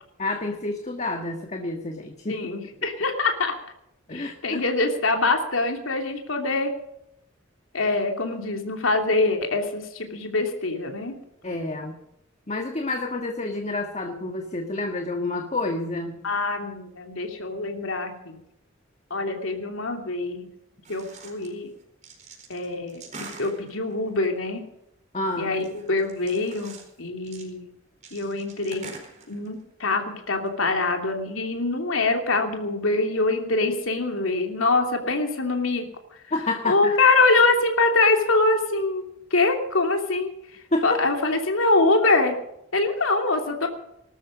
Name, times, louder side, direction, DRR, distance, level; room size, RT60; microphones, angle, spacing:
voice 1, 0.2-2.4 4.1-4.6 11.4-11.9 12.5-16.2 25.1-25.5 36.3-37.0 40.7-41.0, left 2 dB, 35° left, 4 dB, 1.6 m, -29 dB
voice 2, 2.3-3.5 4.1-6.7 7.7-11.2 16.2-18.3 19.1-20.5 20.9-21.7 22.5-24.6 25.4-27.7 28.1-28.9 29.3-35.9 36.6-39.1 39.3-40.3 40.8-42.3 42.7-43.7, left 3 dB, 85° left, 3 dB, 2.9 m, -24 dB
sound 1, 20.8-21.5 21.8-24.3 25.3-27.0 27.2-27.5 28.0-29.8 30.2-30.3 30.5-30.6, right 4 dB, 35° right, 4.4 m, -45 dB
20.0 x 13.0 x 5.2 m, 0.79 s
head